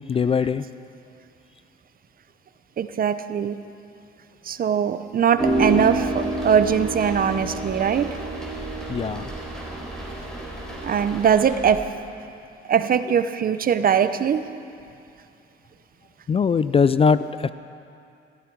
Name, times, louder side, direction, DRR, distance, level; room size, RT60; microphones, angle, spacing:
voice 1, 0.1-0.6 8.9-9.2 16.3-17.5, left 5 dB, 30° left, 14 dB, 0.3 m, -20 dB
voice 2, 2.8-3.6 4.4-8.1 10.8-11.9 12.7-14.4, right 7 dB, 45° right, 11 dB, 0.7 m, -21 dB
sound 1, 5.4-11.8, right 2 dB, 5° left, 4.0 m, -28 dB
16.0 x 13.5 x 4.6 m, 2.5 s
cardioid pair, 90°, 20 cm